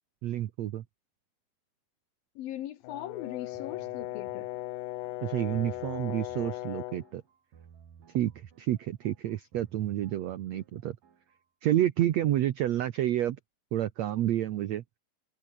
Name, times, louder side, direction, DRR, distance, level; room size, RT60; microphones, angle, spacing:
voice 1, 0.2-0.8 5.2-7.2 8.1-11.0 11.6-13.4 13.7-14.8, right 12 dB, 80° right, 1.5 m, -29 dB
voice 2, 2.4-4.5 10.5-10.6, left 12 dB, 70° left, 2.9 m, -40 dB
Brass instrument, 2.8-7.1, left 18 dB, 90° left, 1.8 m, -38 dB
sound 1, 3.5-11.4, right 7 dB, 60° right, 4.5 m, -57 dB
omnidirectional pair, 4.5 m